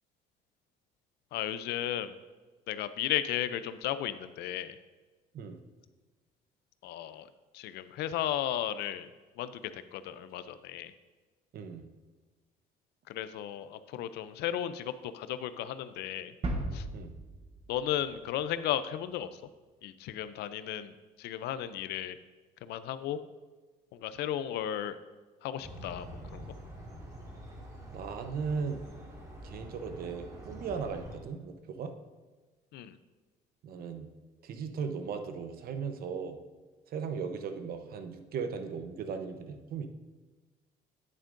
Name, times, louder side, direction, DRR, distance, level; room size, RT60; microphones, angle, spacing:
voice 1, 1.3-2.1 2.7-4.8 6.8-7.3 7.5-9.1 9.4-10.9 13.1-16.3 16.7-16.9 17.7-19.4 19.8-20.9 21.2-22.2 22.6-23.2 23.9-25.0 25.4-26.1 26.3-26.5 32.7-33.0, left 11 dB, 80° left, 13 dB, 0.5 m, -34 dB
voice 2, 11.5-11.9 16.9-17.2 27.9-28.9 29.4-31.9 33.6-34.1 34.4-36.4 36.9-39.9, right 5 dB, 60° right, 7 dB, 0.8 m, -37 dB
sound 1, 16.4-19.1, right 1 dB, 35° right, 1.1 m, -38 dB
sound 2, 25.6-31.2, equal, 20° right, 2.0 m, -46 dB
9.9 x 8.8 x 2.6 m, 1.3 s
cardioid pair, 110°, 17 cm